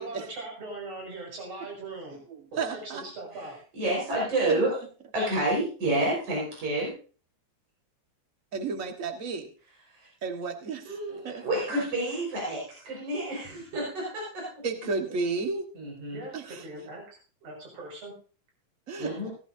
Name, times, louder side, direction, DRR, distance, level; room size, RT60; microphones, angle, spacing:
voice 1, 0.0-2.2 2.5-3.6 5.2-5.3 15.1-15.2 16.1-18.1 19.2-19.3, right 2 dB, 60° right, -1 dB, 7.1 m, -41 dB
voice 2, 2.3-3.0 4.5-4.6 8.5-9.5 10.2-11.0 11.2-11.4 14.6-15.6 16.3-16.6 18.9-19.2, right 4 dB, 35° right, 4 dB, 1.4 m, -32 dB
voice 3, 3.7-4.8 5.1-6.9 10.0-10.1 10.9-14.4 14.8-14.9 15.8-16.2 19.0-19.3, right 1 dB, 80° right, -3 dB, 6.5 m, -29 dB
17.5 x 13.5 x 2.7 m, 0.40 s
omnidirectional pair, 3.3 m